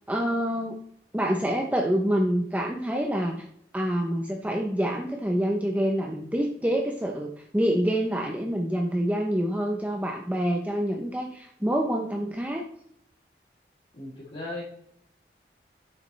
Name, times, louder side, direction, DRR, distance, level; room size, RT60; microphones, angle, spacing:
voice 1, 0.1-0.8 1.1-3.4 3.7-12.6, equal, 10° right, 1 dB, 0.7 m, -27 dB
voice 2, 13.9-14.6, left 2 dB, 40° left, -9 dB, 3.3 m, -36 dB
9.3 x 7.1 x 3.3 m, 0.68 s
head